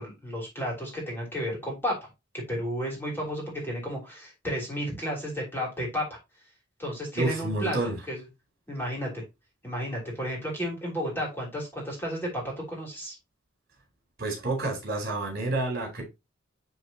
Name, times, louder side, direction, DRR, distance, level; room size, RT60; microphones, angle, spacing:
voice 1, 0.0-2.1 2.3-6.1 6.8-7.8 8.1-8.2 8.7-9.2 9.6-13.2, equal, 10° left, 3.2 m, -32 dB
voice 2, 7.2-8.0 14.2-16.0, right 2 dB, 50° right, 4.2 m, -29 dB
9.7 x 4.3 x 2.9 m
head